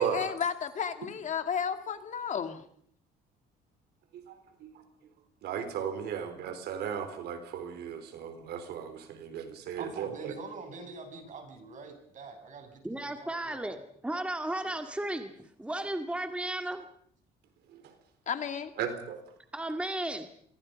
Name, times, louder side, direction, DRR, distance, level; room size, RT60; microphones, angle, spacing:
voice 1, 0.0-2.6 18.3-18.7, left 7 dB, 45° left, 8 dB, 2.3 m, -33 dB
voice 2, 5.4-10.3 18.8-19.2, right 8 dB, 75° right, 9 dB, 4.1 m, -35 dB
voice 3, 9.8-13.9 14.6-15.0, right 4 dB, 50° right, 5 dB, 7.8 m, -45 dB
voice 4, 12.8-13.8 14.0-16.8 19.5-20.3, right 1 dB, 5° right, 6 dB, 2.0 m, -34 dB
27.0 x 23.0 x 5.3 m, 0.64 s
cardioid pair, 110°, 17 cm